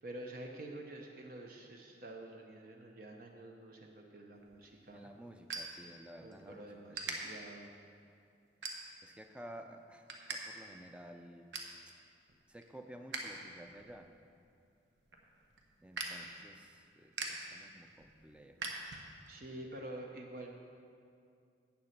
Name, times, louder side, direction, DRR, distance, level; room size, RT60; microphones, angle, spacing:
voice 1, 0.0-5.2 6.2-7.7 19.3-20.6, right 1 dB, 50° right, 2 dB, 0.7 m, -48 dB
sound 1, 4.4-6.4 6.9-7.2 7.7-8.0 8.6-9.2 9.6-10.4 10.7-10.8 11.1-11.8 12.2-13.3 13.6-19.4, right 4 dB, 80° right, 1.1 m, -44 dB
voice 2, 4.9-7.2 9.0-11.5 11.9-12.0 12.5-14.1 15.8-18.8, right 1 dB, 5° right, 6 dB, 0.4 m, -53 dB
8.7 x 7.0 x 6.5 m, 2.4 s
head